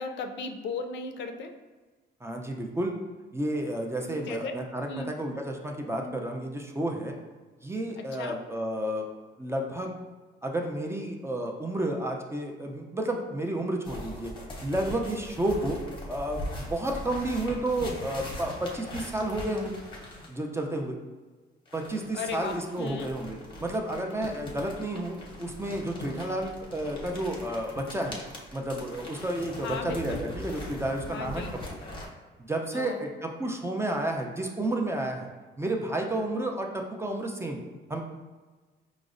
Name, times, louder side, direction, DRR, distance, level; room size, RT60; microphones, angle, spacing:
voice 1, 0.0-1.5 4.0-4.5 4.9-5.1 6.0-6.2 8.0-8.4 22.1-23.1 29.6-30.2 31.0-31.5 32.7-33.0, left 4 dB, 65° left, 5 dB, 0.4 m, -36 dB
voice 2, 2.2-2.9 3.3-7.1 7.6-9.1 9.4-9.9 10.4-14.3 14.6-15.8 16.1-19.8 20.3-21.0 21.7-28.2 28.5-31.4 32.5-35.3 35.6-37.6 37.9-38.0, right 1 dB, 15° right, 1 dB, 0.4 m, -31 dB
sound 1, 13.8-20.4 21.7-32.1, left 1 dB, 25° left, 0.8 m, -41 dB
4.9 x 2.0 x 2.5 m, 1.3 s
cardioid pair, 90°, 20 cm